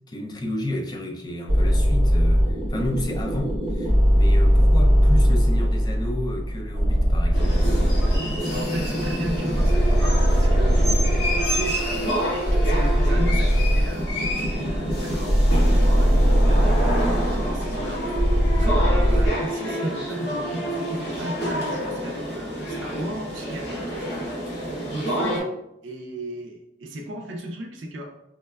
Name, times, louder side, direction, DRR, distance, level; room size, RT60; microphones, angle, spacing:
voice 1, 0.1-7.8, left 1 dB, 20° left, 0.3 m, -31 dB
sound 1, 1.5-19.3, equal, 35° right, 0.7 m, -20 dB
sound 2, 7.3-25.4, equal, 60° left, 1.0 m, -28 dB
voice 2, 8.5-12.3 12.6-18.0 18.6-24.4 24.8-25.5 25.8-28.1, right 1 dB, 80° right, 0.5 m, -36 dB
4.7 x 2.2 x 2.2 m
head